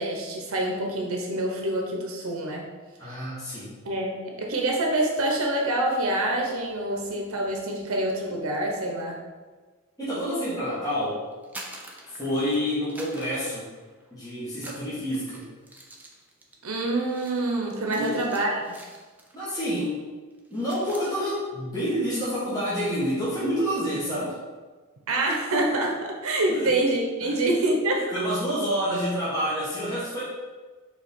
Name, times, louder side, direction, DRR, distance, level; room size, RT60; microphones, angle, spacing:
voice 1, 0.0-2.7 3.8-9.2 16.6-18.6 25.1-28.1, right 1 dB, 75° right, 0 dB, 1.0 m, -26 dB
voice 2, 3.0-3.8 10.0-11.2 12.1-13.7 14.1-15.5 17.9-18.2 19.3-20.0 20.5-24.4 26.5-26.8 27.2-27.4 28.1-30.2, equal, 15° left, -11 dB, 1.5 m, -28 dB
sound 1, 11.3-12.6 12.9-14.1 14.5-19.5 19.7-20.0 20.3-21.1, right 1 dB, 10° right, 0.6 m, -46 dB
5.2 x 3.6 x 5.7 m, 1.4 s
head